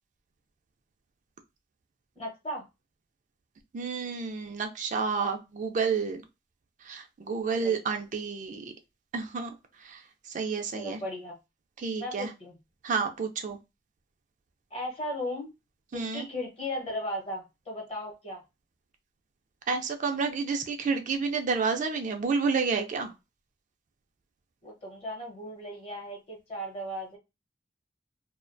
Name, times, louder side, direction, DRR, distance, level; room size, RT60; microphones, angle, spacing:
voice 1, 2.2-2.6 7.6-7.8 10.7-11.3 12.0-12.6 14.7-15.5 15.9-18.4 24.6-27.2, left 1 dB, 35° left, 0 dB, 0.9 m, -36 dB
voice 2, 3.7-6.2 6.8-8.7 9.1-9.5 9.8-10.0 10.3-11.0 11.8-12.3 12.8-13.6 15.9-16.3 19.7-23.1, right 5 dB, 45° right, 5 dB, 0.4 m, -30 dB
2.3 x 2.1 x 2.5 m, 0.24 s
head